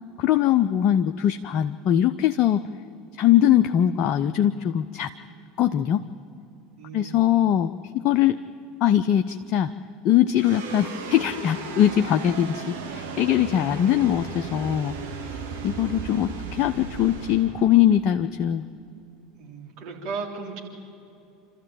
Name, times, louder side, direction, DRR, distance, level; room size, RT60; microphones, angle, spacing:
voice 1, 0.2-2.6 3.2-5.1 5.6-6.0 6.9-7.7 8.0-8.4 8.8-9.7 10.0-15.0 15.6-18.6, left 11 dB, 50° left, 8 dB, 0.6 m, -21 dB
voice 2, 6.8-7.5 19.3-20.6, right 4 dB, 55° right, 0 dB, 3.6 m, -36 dB
sound 1, 10.4-18.9, right 4 dB, 75° right, 2.2 m, -36 dB
26.5 x 13.5 x 9.1 m, 2.6 s
figure-of-eight pair, 75°, 0 cm